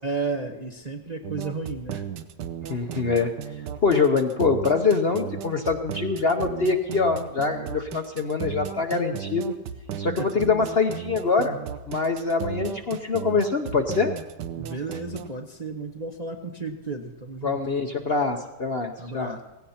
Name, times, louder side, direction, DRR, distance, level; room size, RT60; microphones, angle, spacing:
voice 1, 0.0-2.0 14.5-17.6 19.0-19.4, right 4 dB, 30° right, 2 dB, 0.9 m, -33 dB
sound 1, 1.2-15.3, right 9 dB, 80° right, 1.5 m, -35 dB
voice 2, 2.7-3.3 3.8-9.5 10.0-11.6 11.9-14.1 17.4-19.3, left 4 dB, 45° left, 4 dB, 0.9 m, -24 dB
17.5 x 16.5 x 4.3 m, 1.1 s
omnidirectional pair, 1.9 m